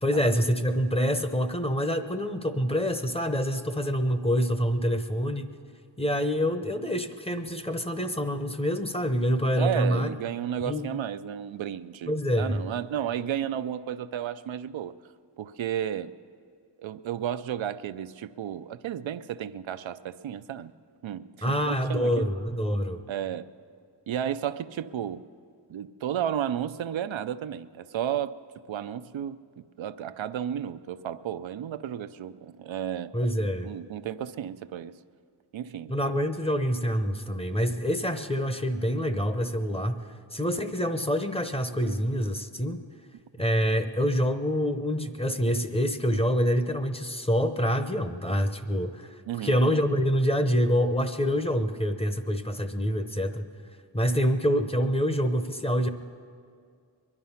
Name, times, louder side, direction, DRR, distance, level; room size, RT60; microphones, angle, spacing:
voice 1, 0.0-5.5 6.0-10.1 10.6-11.0 12.1-12.6 21.4-23.0 33.1-33.7 35.9-42.8 43.4-53.5 53.9-55.9, equal, 15° left, 8 dB, 0.7 m, -26 dB
voice 2, 9.5-15.0 15.4-16.1 16.8-20.7 21.0-22.3 23.1-23.5 24.1-25.2 25.7-28.3 28.7-29.4 29.8-33.1 33.6-35.0 35.5-35.9 49.3-49.6, right 10 dB, 85° right, 11 dB, 0.6 m, -33 dB
22.0 x 11.0 x 5.7 m, 2.2 s
wide cardioid pair, 95°, 45 cm